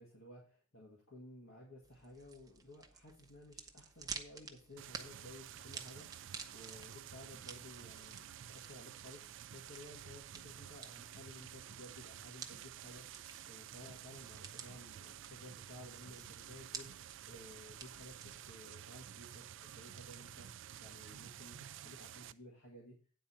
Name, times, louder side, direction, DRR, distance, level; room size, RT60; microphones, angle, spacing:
voice 1, 0.0-21.6 21.8-23.0, left 1 dB, 70° left, -3 dB, 1.9 m, -56 dB
sound 1, 1.8-18.6, right 5 dB, 15° right, 0.7 m, -53 dB
sound 2, 4.8-22.3, right 10 dB, 60° right, 0.4 m, -51 dB
9.1 x 4.3 x 6.2 m, 0.41 s
head